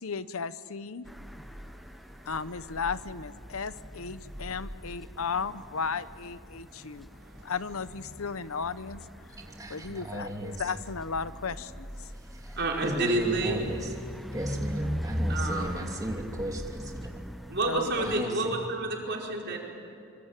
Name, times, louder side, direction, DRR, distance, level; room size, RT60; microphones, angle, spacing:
voice 1, 0.0-1.1 2.2-7.1 7.4-9.0 9.7-11.9 17.7-18.2, left 5 dB, 75° left, 14 dB, 0.9 m, -35 dB
sound 1, 1.1-18.2, equal, ahead, 0.7 m, -39 dB
voice 2, 6.8-7.5 9.4-9.6 12.6-13.6 15.3-15.7 17.5-19.6, right 2 dB, 50° right, 0 dB, 5.0 m, -30 dB
voice 3, 9.4-10.6 12.1-13.9 14.3-17.2 18.0-18.6, right 1 dB, 15° right, 1 dB, 2.8 m, -36 dB
26.0 x 25.5 x 9.0 m, 2.6 s
head